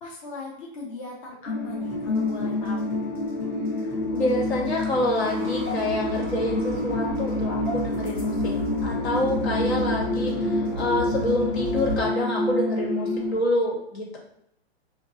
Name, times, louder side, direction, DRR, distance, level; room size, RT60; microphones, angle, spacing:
voice 1, 0.0-2.9, left 3 dB, 35° left, -2 dB, 0.4 m, -39 dB
sound 1, 1.5-13.3, left 2 dB, 50° left, 1.1 m, -28 dB
sound 2, 1.8-12.0, right 1 dB, 10° left, 0.8 m, -34 dB
voice 2, 4.1-8.5 8.8-14.2, left 1 dB, 75° left, -2 dB, 1.4 m, -27 dB
3.6 x 2.2 x 2.8 m, 0.77 s
hypercardioid pair, 170°, 33 cm